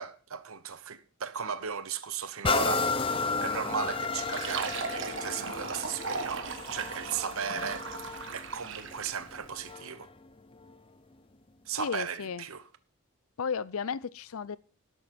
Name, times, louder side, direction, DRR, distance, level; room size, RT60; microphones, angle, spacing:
voice 1, 0.0-7.9 8.3-10.1 11.7-12.6, right 7 dB, 75° right, 0.9 m, -36 dB
sound 1, 2.4-10.1 10.6-10.7, left 4 dB, 25° left, 0.6 m, -33 dB
Fill (with liquid), 4.2-9.3, right 5 dB, 60° right, 1.4 m, -38 dB
voice 2, 11.7-12.5 13.4-14.6, left 6 dB, 75° left, 0.5 m, -34 dB
13.0 x 10.5 x 4.2 m
head